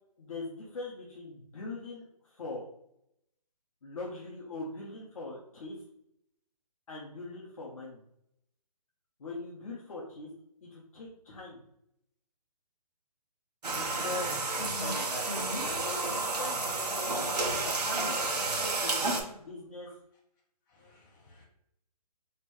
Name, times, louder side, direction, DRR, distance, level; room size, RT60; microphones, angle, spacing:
voice 1, 0.2-2.6 3.8-5.8 6.9-8.0 9.2-10.3 10.6-11.6 13.7-14.3 14.8-15.3 15.6-17.1 17.6-19.9, left 3 dB, 60° left, -4 dB, 1.2 m, -42 dB
sound 1, 13.6-19.2, right 3 dB, 80° right, 1.2 m, -31 dB
voice 2, 14.5-15.7 18.9-19.0 20.7-21.4, left 1 dB, 30° left, -5 dB, 1.7 m, -42 dB
4.2 x 3.3 x 3.1 m, 0.73 s
hypercardioid pair, 165°, 20 cm